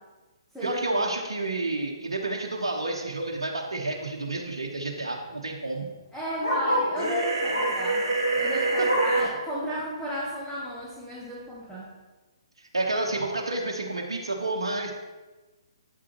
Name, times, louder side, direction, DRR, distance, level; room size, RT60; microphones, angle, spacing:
voice 1, 0.6-5.8 12.7-14.9, right 2 dB, 70° right, 0 dB, 1.0 m, -30 dB
Bark, 3.3-3.5 3.9-4.0 4.2-7.0 7.5-7.9 8.3-9.3 9.7-9.8 10.2-10.3 11.0-11.1, left 1 dB, 80° left, 2.3 m, -30 dB
voice 2, 6.1-11.9, equal, ahead, -7 dB, 1.0 m, -34 dB
sound 1, 7.0-9.2, right 2 dB, 40° right, 2.0 m, -26 dB
8.3 x 6.1 x 3.0 m, 1.2 s
figure-of-eight pair, 130°, 3 cm